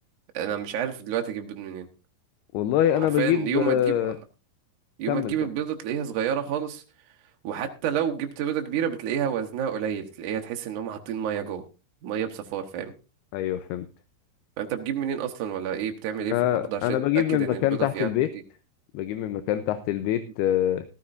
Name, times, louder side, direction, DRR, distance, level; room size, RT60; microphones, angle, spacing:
voice 1, 0.3-1.9 3.0-4.1 5.0-6.8 7.4-11.6 12.0-12.9 14.6-16.3 16.7-17.0 17.3-18.4, right 9 dB, 65° right, 4 dB, 2.1 m, -29 dB
voice 2, 2.5-4.2 5.1-5.3 13.3-13.9 16.3-18.3 18.9-20.8, left 12 dB, 80° left, 10 dB, 2.7 m, -24 dB
15.0 x 14.0 x 2.6 m, 0.30 s
omnidirectional pair, 4.6 m